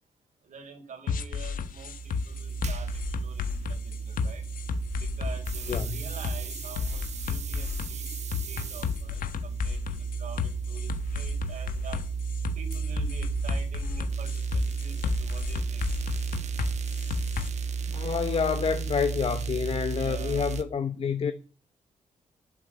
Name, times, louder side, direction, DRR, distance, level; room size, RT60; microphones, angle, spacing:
voice 1, 0.4-4.5 4.9-12.0 12.6-15.9 19.9-20.6, right 5 dB, 70° right, 5.1 m, -46 dB
sound 1, 1.1-17.5, left 6 dB, 85° left, 1.4 m, -32 dB
sound 2, 1.3-20.6, right 5 dB, 55° right, 1.6 m, -33 dB
voice 2, 17.9-21.3, left 6 dB, 45° left, 1.1 m, -28 dB
14.0 x 7.8 x 9.0 m
wide cardioid pair, 155°, 14 cm